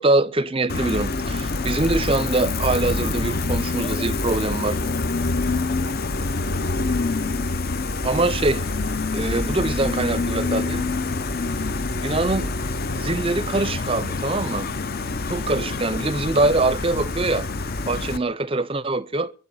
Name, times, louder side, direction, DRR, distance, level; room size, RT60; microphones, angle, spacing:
voice 1, 0.0-4.8 8.0-8.7 9.1-10.8 12.0-12.5 12.9-14.7 15.3-17.5 17.9-19.3, right 2 dB, 25° right, 0.6 m, -23 dB
Gull seagull, 0.7-18.2, left 3 dB, 45° left, 0.7 m, -26 dB
23.5 x 8.2 x 5.6 m
head